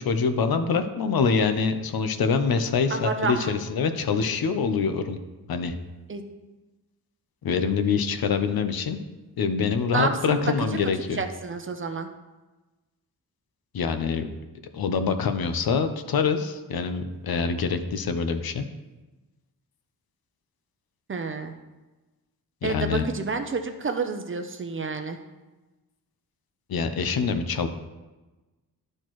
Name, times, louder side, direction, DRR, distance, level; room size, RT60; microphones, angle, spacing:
voice 1, 0.0-5.2 5.5-5.7 7.4-9.0 9.4-11.2 13.7-14.3 14.7-18.6 22.6-23.0 26.7-27.7, left 5 dB, 70° left, 8 dB, 0.7 m, -25 dB
voice 2, 2.9-3.5 6.1-6.2 9.9-12.1 21.1-21.5 22.6-25.2, right 4 dB, 35° right, 6 dB, 0.6 m, -29 dB
12.0 x 4.4 x 3.1 m, 1.2 s
wide cardioid pair, 130°, 37 cm